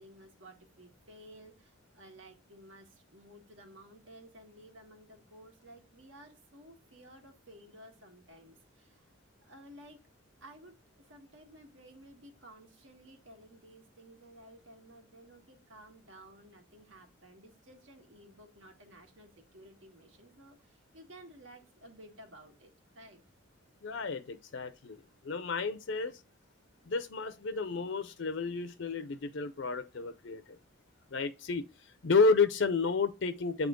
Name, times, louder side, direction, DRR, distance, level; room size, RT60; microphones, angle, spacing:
voice 1, 0.0-9.1 9.4-10.0 10.4-22.7 22.9-23.2, right 1 dB, 70° right, 1.7 m, -55 dB
voice 2, 23.8-25.0 25.2-26.2 26.8-30.4 31.1-33.7, left 4 dB, 60° left, 0.5 m, -31 dB
8.3 x 3.5 x 3.7 m
head